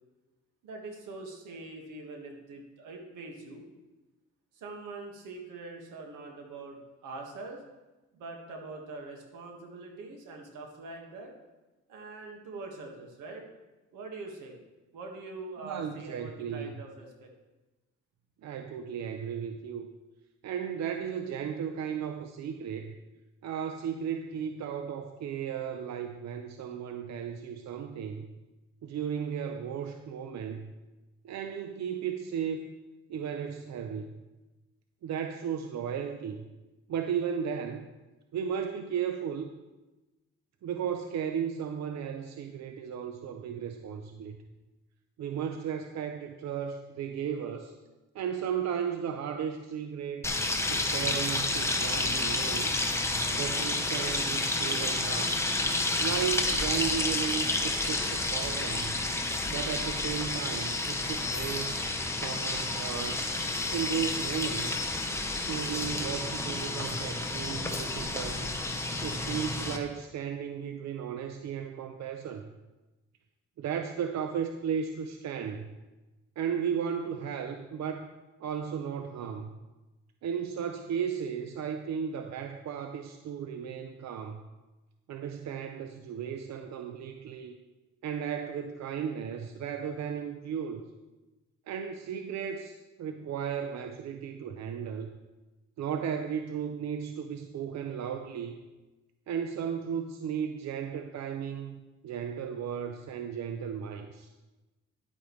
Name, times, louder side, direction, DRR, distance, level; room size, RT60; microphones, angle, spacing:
voice 1, 0.6-3.7 4.5-7.6 8.1-11.3 11.9-13.5 13.9-14.6 14.9-17.3, right 3 dB, 85° right, 2 dB, 1.7 m, -43 dB
voice 2, 15.6-16.7 18.4-19.9 20.4-22.9 23.4-28.3 28.8-30.7 31.2-32.7 33.1-34.1 35.0-36.5 36.9-37.9 38.3-39.5 40.6-44.4 45.2-47.7 48.1-50.2 50.7-52.7 53.3-55.4 56.0-58.9 59.5-61.8 62.1-63.2 63.7-64.9 65.4-68.5 69.0-72.5 73.6-75.7 76.4-78.1 78.4-79.5 80.2-84.4 85.1-87.6 88.0-90.8 91.7-95.1 95.8-98.6 99.3-104.3, right 7 dB, 65° right, 6 dB, 0.7 m, -35 dB
sound 1, 50.2-69.8, left 2 dB, 10° left, 1.0 m, -30 dB
10.5 x 8.4 x 3.2 m, 1.1 s
cardioid pair, 90°, 30 cm